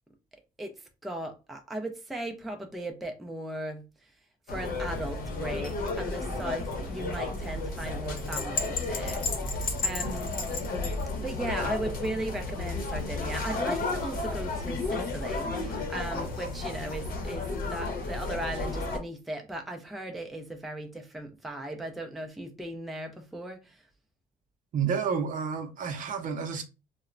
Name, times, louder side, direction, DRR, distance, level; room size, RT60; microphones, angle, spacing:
voice 1, 1.0-3.8 4.5-10.3 11.2-23.6, right 1 dB, ahead, 0.4 m, -37 dB
sound 1, 4.5-19.0, left 3 dB, 60° left, 0.8 m, -32 dB
voice 2, 24.7-26.6, right 6 dB, 50° right, 0.6 m, -30 dB
2.9 x 2.1 x 2.5 m
cardioid pair, 110°, 17 cm